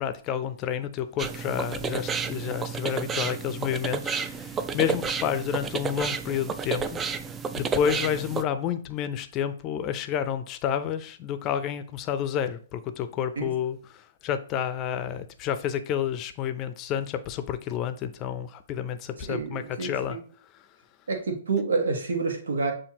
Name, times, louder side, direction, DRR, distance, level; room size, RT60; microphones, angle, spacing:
voice 1, 0.0-7.0 7.5-20.2, left 9 dB, 30° left, 0.5 m, -30 dB
sound 1, 1.2-8.4, right 5 dB, 20° right, 0.4 m, -31 dB
voice 2, 19.3-20.2 21.1-22.7, right 4 dB, 75° right, 1.2 m, -28 dB
6.9 x 2.5 x 2.9 m
hypercardioid pair, 120°, 0 cm